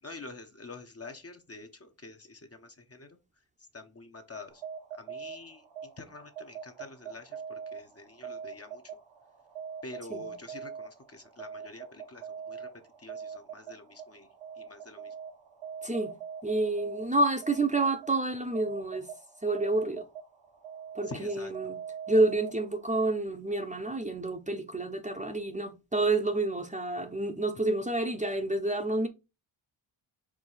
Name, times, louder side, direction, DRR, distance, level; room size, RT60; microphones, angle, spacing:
voice 1, 0.0-3.2 3.7-4.6 4.9-8.8 9.8-12.7 13.0-14.3 14.6-15.1 21.0-21.5, left 3 dB, 30° left, 1.1 m, -47 dB
sound 1, 4.5-23.0, right 7 dB, 90° right, 2.2 m, -43 dB
voice 2, 15.8-16.1 16.4-19.1 19.4-20.0 20.9-21.8 22.1-29.1, right 2 dB, 15° right, 0.9 m, -29 dB
4.9 x 3.6 x 5.6 m
cardioid pair, 80°, 49 cm